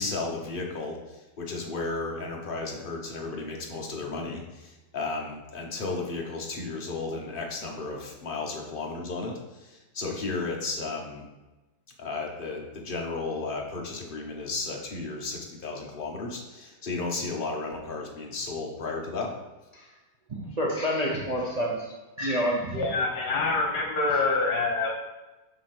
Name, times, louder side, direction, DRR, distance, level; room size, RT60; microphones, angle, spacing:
voice 1, 0.0-11.3 12.0-19.3, left 3 dB, 35° left, 0 dB, 1.0 m, -34 dB
voice 2, 20.3-21.9 22.2-22.8, equal, 35° right, -3 dB, 0.7 m, -28 dB
voice 3, 22.7-25.0, left 3 dB, 70° left, 1 dB, 1.8 m, -26 dB
7.7 x 3.0 x 6.0 m, 1.1 s
omnidirectional pair, 1.8 m